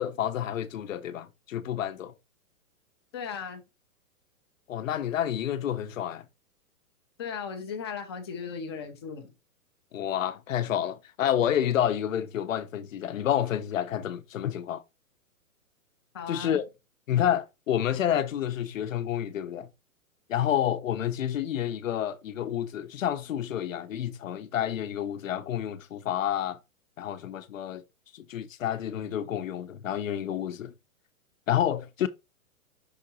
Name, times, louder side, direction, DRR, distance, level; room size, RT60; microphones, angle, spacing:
voice 1, 0.0-2.1 4.7-6.2 9.9-14.8 16.3-16.6 17.1-19.7 20.3-26.6 27.0-27.8 28.1-30.7 31.5-32.1, left 10 dB, 60° left, 0.9 m, -29 dB
voice 2, 3.1-3.6 7.2-9.3 16.1-16.6, left 6 dB, 20° left, 0.6 m, -36 dB
5.9 x 3.8 x 4.1 m
hypercardioid pair, 165°, 44 cm